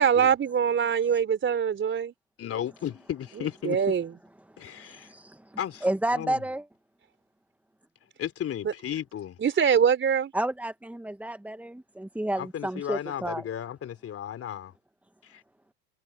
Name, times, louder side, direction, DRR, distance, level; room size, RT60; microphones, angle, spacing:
voice 1, 0.0-2.1 3.4-4.1 8.6-8.7 9.4-10.3, right 7 dB, 30° right, 4.3 m, -23 dB
voice 2, 2.4-3.9 4.6-5.1 5.6-5.9 6.2-6.4 8.2-9.4 12.4-14.7, left 10 dB, 40° left, 3.4 m, -34 dB
voice 3, 4.7-6.7 10.3-13.4, right 1 dB, 5° right, 2.1 m, -31 dB
hypercardioid pair, 75°, 36 cm